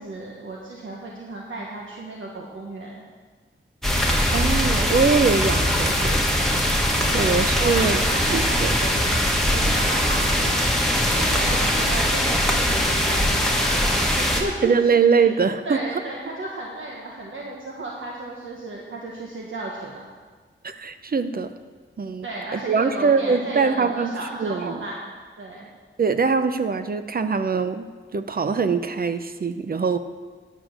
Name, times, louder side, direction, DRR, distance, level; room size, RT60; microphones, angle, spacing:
voice 1, 0.0-3.0 6.8-15.3 15.6-20.1 22.2-25.1 25.4-25.7, right 2 dB, 70° right, -3 dB, 1.3 m, -34 dB
sound 1, 3.8-14.4, equal, ahead, 1.4 m, -21 dB
voice 2, 4.3-6.2 6.7-8.0 8.3-8.7 14.6-15.8 20.6-21.5 22.0-22.3 22.5-24.1 24.4-24.8 26.0-30.0, right 5 dB, 45° right, 10 dB, 0.6 m, -22 dB
10.5 x 6.3 x 6.4 m, 1.5 s
wide cardioid pair, 105°, 21 cm